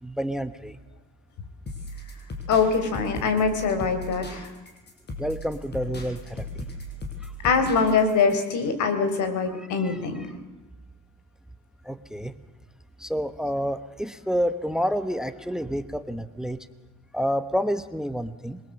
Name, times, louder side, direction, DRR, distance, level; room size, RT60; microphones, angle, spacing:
voice 1, 0.0-0.8 5.2-6.7 7.2-7.3 9.5-10.0 11.8-12.3 13.0-16.6 17.1-18.6, equal, ahead, 12 dB, 1.0 m, -29 dB
sound 1, 1.7-8.5, left 1 dB, 35° left, 5.7 m, -37 dB
voice 2, 2.5-4.5 7.4-10.3, left 5 dB, 75° left, 8 dB, 4.4 m, -23 dB
27.0 x 22.0 x 7.6 m, 1.1 s
cardioid pair, 140°, 30 cm